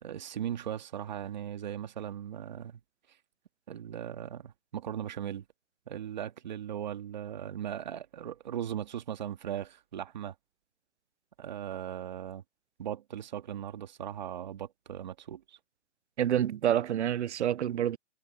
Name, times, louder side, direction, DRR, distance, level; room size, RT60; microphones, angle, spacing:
voice 1, 0.0-2.8 3.7-5.5 5.9-10.3 11.4-12.4 12.8-15.6, right 10 dB, 35° right, 2.0 m, -38 dB
voice 2, 16.2-18.0, right 10 dB, 65° right, 0.6 m, -28 dB
hypercardioid pair, 175°, 36 cm